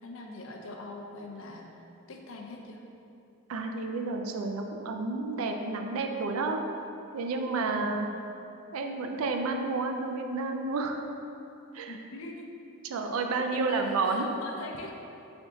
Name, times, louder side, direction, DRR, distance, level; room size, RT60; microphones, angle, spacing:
voice 1, 0.0-1.8 2.1-2.8 7.7-8.0 11.9-12.5 13.5-14.9, left 2 dB, 65° left, 1 dB, 0.5 m, -42 dB
voice 2, 3.5-6.6 7.1-8.1 8.7-11.0 11.7-11.9 12.8-14.3, right 3 dB, 75° right, 4 dB, 0.4 m, -30 dB
3.8 x 3.5 x 3.6 m, 2.7 s
head